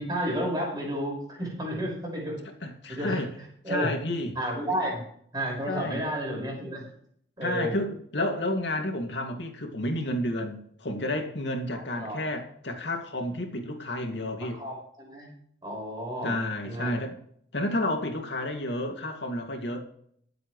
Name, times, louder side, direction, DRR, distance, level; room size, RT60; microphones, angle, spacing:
voice 1, 0.0-2.4 2.9-3.3 3.6-3.9 4.3-5.0 5.3-6.9 7.4-7.7 11.7-12.2 14.5-15.3 15.6-16.4 16.6-16.9, equal, 25° right, -1 dB, 5.7 m, -31 dB
voice 2, 2.6-3.3 3.7-4.4 5.7-6.0 7.4-14.6 16.2-17.1 17.5-19.8, left 1 dB, 80° left, 3 dB, 2.4 m, -31 dB
23.0 x 7.9 x 3.2 m, 0.66 s
head